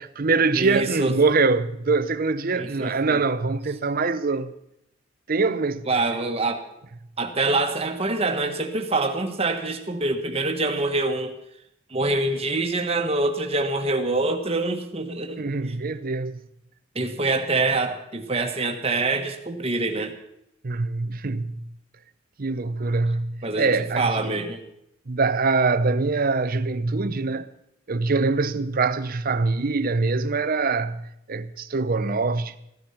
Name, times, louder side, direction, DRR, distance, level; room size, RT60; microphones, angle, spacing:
voice 1, 0.0-4.5 5.3-5.9 15.4-16.4 20.6-21.6 22.4-24.4 25.1-27.5 27.9-32.6, right 3 dB, 45° right, 0.7 m, -24 dB
voice 2, 0.5-1.2 2.6-3.2 5.9-6.6 7.2-11.3 11.9-15.4 16.9-20.1 23.4-24.6, right 2 dB, 30° right, 1.4 m, -25 dB
15.5 x 12.0 x 5.7 m
head